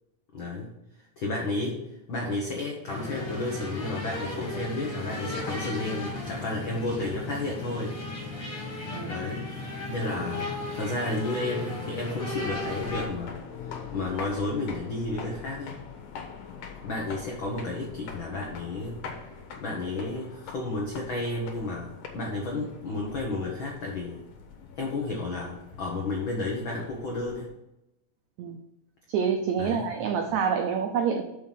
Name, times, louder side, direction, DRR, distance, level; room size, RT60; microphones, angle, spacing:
voice 1, 0.3-0.7 1.2-1.8 2.1-8.0 9.1-9.5 9.9-13.3 13.6-15.8 16.8-19.3 19.6-24.2 24.8-27.5 29.6-29.9, left 2 dB, 80° left, -1 dB, 1.1 m, -32 dB
sound 1, 2.9-13.1, left 2 dB, 30° left, 2.0 m, -35 dB
sound 2, 12.2-27.5, left 6 dB, 65° left, 2.4 m, -43 dB
voice 2, 29.1-31.2, right 6 dB, 85° right, 5 dB, 1.6 m, -27 dB
6.5 x 5.5 x 5.7 m, 0.91 s
omnidirectional pair, 4.0 m